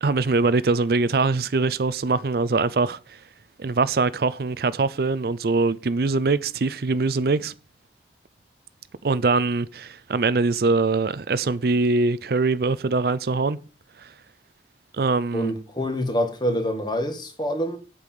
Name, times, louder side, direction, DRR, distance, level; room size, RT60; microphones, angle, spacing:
voice 1, 0.0-3.2 3.6-7.5 9.0-13.6 14.0-14.1 14.9-15.5, right 3 dB, 55° right, 0.5 m, -23 dB
voice 2, 15.3-17.8, equal, 25° left, 1.8 m, -26 dB
8.3 x 6.9 x 7.5 m
head